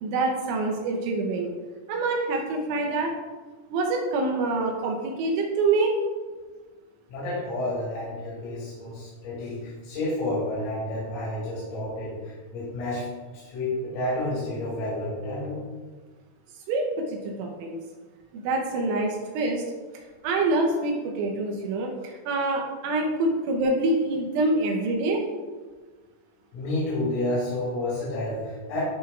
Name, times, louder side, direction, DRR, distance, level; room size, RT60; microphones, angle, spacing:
voice 1, 0.0-1.5 1.9-3.1 3.7-6.0 16.7-17.8 18.3-19.6 19.9-25.3, right 2 dB, 80° right, 1 dB, 2.9 m, -26 dB
voice 2, 7.1-13.1 13.3-15.6 26.5-28.8, left 1 dB, 85° left, -10 dB, 4.7 m, -30 dB
11.5 x 4.9 x 2.3 m, 1.4 s
omnidirectional pair, 5.9 m